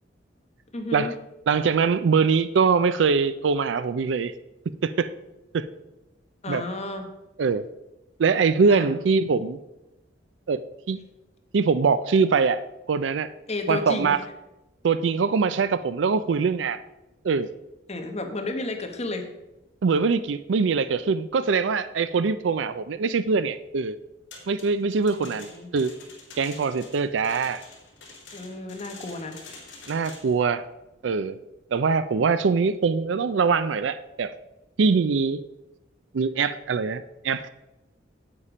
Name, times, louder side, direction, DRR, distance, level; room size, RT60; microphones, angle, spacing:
voice 1, 0.7-1.1 6.4-7.1 8.7-8.9 13.5-14.2 17.9-19.3 25.2-25.7 28.3-29.4, left 2 dB, 35° left, 5 dB, 1.2 m, -32 dB
voice 2, 1.5-4.3 4.8-5.1 5.5-5.7 6.5-6.6 7.4-7.7 8.2-9.6 10.5-10.6 10.9-11.0 11.5-12.6 12.9-13.3 13.7-14.2 14.8-16.8 17.2-17.5 19.8-23.9 24.5-25.9 26.4-27.6 29.9-30.6 31.0-31.4 31.7-34.3 34.8-35.4 36.1-37.5, right 5 dB, 75° right, 15 dB, 0.4 m, -23 dB
sound 1, 24.3-30.4, left 3 dB, 70° left, 3.7 m, -46 dB
8.8 x 8.4 x 5.0 m, 0.98 s
head